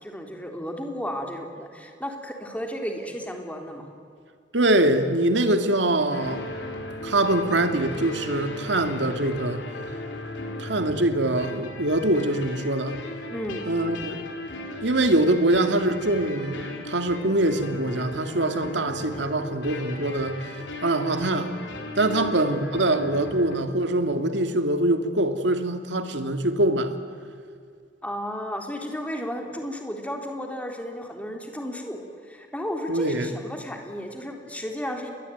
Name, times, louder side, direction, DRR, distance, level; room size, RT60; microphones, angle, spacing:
voice 1, 0.0-3.9 13.3-13.7 22.1-22.4 28.0-35.1, equal, 10° left, 3 dB, 3.6 m, -33 dB
voice 2, 4.5-6.5 7.0-9.6 10.6-13.0 13.7-14.2 14.8-20.4 20.8-21.5 22.0-26.9 32.9-33.3, right 1 dB, 70° right, 7 dB, 2.4 m, -23 dB
sound 1, 6.1-23.6, left 2 dB, 75° left, 4.2 m, -37 dB
29.0 x 22.0 x 9.4 m, 2.2 s
head